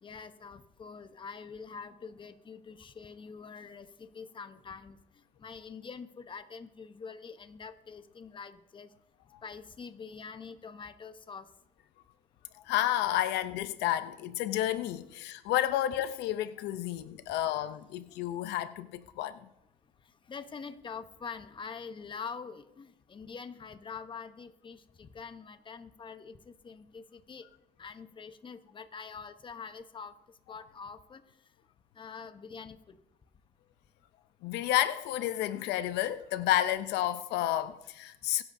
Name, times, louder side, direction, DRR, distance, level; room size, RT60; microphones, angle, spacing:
voice 1, 0.0-5.0 5.4-8.9 9.4-11.5 20.3-27.5 27.8-30.1 30.5-31.2 32.0-33.0, left 5 dB, 30° left, 0.9 m, -45 dB
voice 2, 12.7-19.4 34.4-38.4, left 13 dB, 85° left, 0.6 m, -31 dB
22.5 x 10.5 x 2.7 m
cardioid pair, 110°, 17 cm